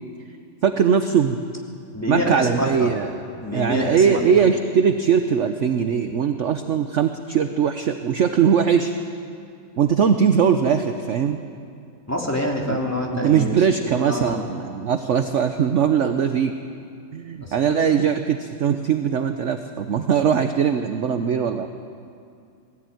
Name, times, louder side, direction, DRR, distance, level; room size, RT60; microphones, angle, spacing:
voice 1, 0.6-1.4 2.1-3.1 3.5-8.9 9.8-11.4 12.7-12.8 13.2-16.5 17.1-21.7, right 7 dB, 55° right, 7 dB, 0.9 m, -20 dB
voice 2, 1.9-2.9 3.4-4.2 12.1-14.4 17.4-17.5, left 1 dB, 10° left, -1 dB, 2.6 m, -26 dB
20.0 x 15.5 x 9.2 m, 2.4 s
omnidirectional pair, 1.9 m